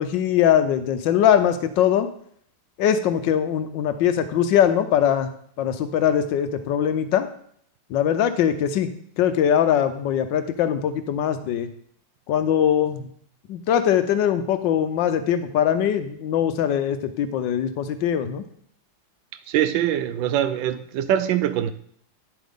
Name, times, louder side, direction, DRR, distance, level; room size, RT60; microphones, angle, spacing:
voice 1, 0.0-2.1 2.8-5.3 5.6-7.3 7.9-8.9 9.2-11.7 12.3-13.1 13.5-18.4, left 9 dB, 75° left, 1.3 m, -21 dB
voice 2, 19.5-21.7, right 11 dB, 75° right, 1.3 m, -23 dB
9.9 x 7.5 x 3.6 m
omnidirectional pair, 2.1 m